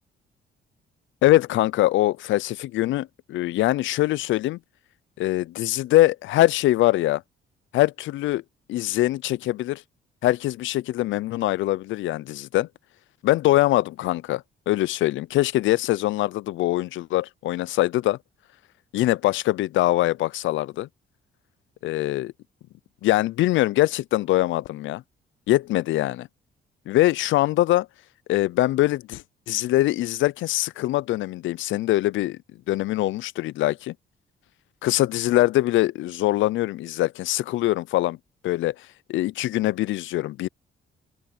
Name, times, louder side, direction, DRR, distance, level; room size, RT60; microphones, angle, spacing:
voice 1, 1.2-4.6 5.2-7.2 7.7-8.4 8.7-9.8 10.2-12.7 13.2-18.2 18.9-20.9 21.8-22.3 23.0-25.0 25.5-26.3 26.9-27.9 28.3-32.4 32.7-33.9 34.8-38.2 38.4-38.7 39.1-40.5, left 16 dB, 75° left, 0.5 m, -23 dB
open air
cardioid pair, 90°, 20 cm